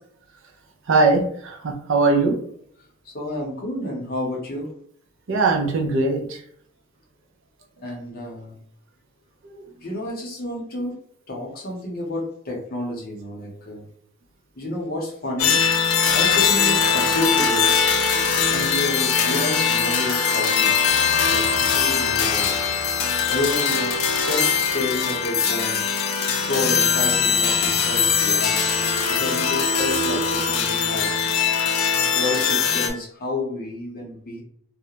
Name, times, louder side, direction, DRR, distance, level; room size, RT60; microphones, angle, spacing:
voice 1, 0.9-2.4 5.3-6.4, right 3 dB, 55° right, 2 dB, 0.5 m, -20 dB
voice 2, 3.0-4.7 7.8-8.6 9.8-10.9 11.3-13.8 14.6-15.6 16.1-17.7 18.5-20.7 21.3-22.5 23.3-25.8 26.3-28.6 29.1-31.1 32.1-34.4, left 2 dB, 45° left, -1 dB, 0.7 m, -30 dB
sound 1, 15.4-32.9, left 6 dB, 75° left, 0.4 m, -21 dB
2.4 x 2.1 x 2.8 m, 0.64 s
head